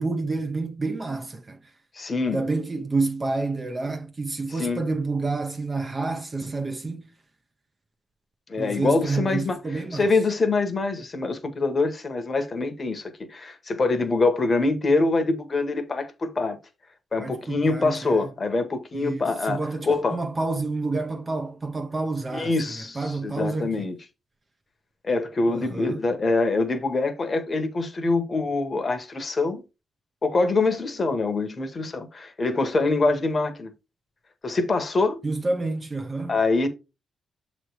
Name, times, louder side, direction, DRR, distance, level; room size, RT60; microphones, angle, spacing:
voice 1, 0.0-1.6 2.3-7.1 8.6-10.0 17.2-18.3 19.0-23.9 25.5-26.0 35.2-36.4, right 3 dB, 20° right, 0.6 m, -29 dB
voice 2, 2.0-2.4 4.5-4.8 8.5-16.6 17.1-20.2 22.3-24.0 25.0-29.6 30.2-33.7 34.4-35.2 36.3-36.7, left 3 dB, 30° left, 1.1 m, -24 dB
7.5 x 3.1 x 4.8 m
wide cardioid pair, 160°, 0 cm